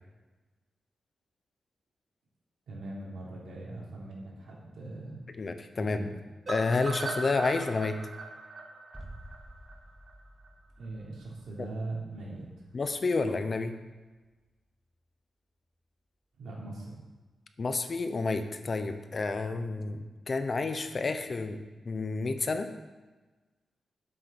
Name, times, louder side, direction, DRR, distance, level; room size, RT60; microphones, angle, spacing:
voice 1, 2.7-5.2 5.8-6.1 10.8-12.4 16.4-17.0, right 2 dB, 90° right, -4 dB, 3.9 m, -40 dB
voice 2, 5.4-6.1 6.5-8.0 12.7-13.8 17.6-22.7, left 3 dB, 35° left, 8 dB, 0.8 m, -30 dB
sound 1, 6.5-10.5 10.8-10.9 11.2-11.3 11.6-11.7, right 3 dB, 30° right, 2.0 m, -39 dB
sound 2, 8.9-14.7 14.9-15.0, right 1 dB, ahead, 0.8 m, -52 dB
11.5 x 7.9 x 6.1 m, 1.2 s
wide cardioid pair, 160°, 0 cm